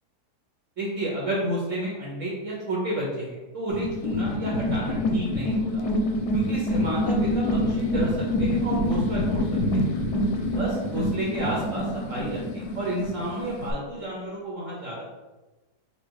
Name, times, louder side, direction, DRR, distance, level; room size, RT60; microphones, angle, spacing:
voice 1, 0.8-5.9 6.3-9.4 9.7-9.9 10.6-15.0, right 1 dB, 55° right, -4 dB, 1.2 m, -31 dB
sound 1, 3.7-13.7, left 1 dB, 90° left, 1.3 m, -26 dB
4.3 x 2.5 x 4.7 m, 1.1 s
omnidirectional pair, 1.7 m